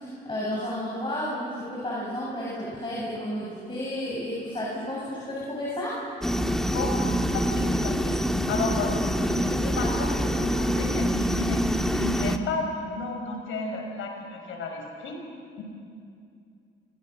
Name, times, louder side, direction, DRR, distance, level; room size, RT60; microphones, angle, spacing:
voice 1, 0.0-5.9, left 1 dB, 25° left, -6 dB, 7.7 m, -32 dB
sound 1, 6.2-12.4, equal, ahead, 1.6 m, -25 dB
voice 2, 7.3-8.2 8.5-8.9 9.2-15.2 15.6-15.7, left 3 dB, 85° left, 2 dB, 6.0 m, -33 dB
29.0 x 23.5 x 6.5 m, 2.3 s
cardioid pair, 90°, 20 cm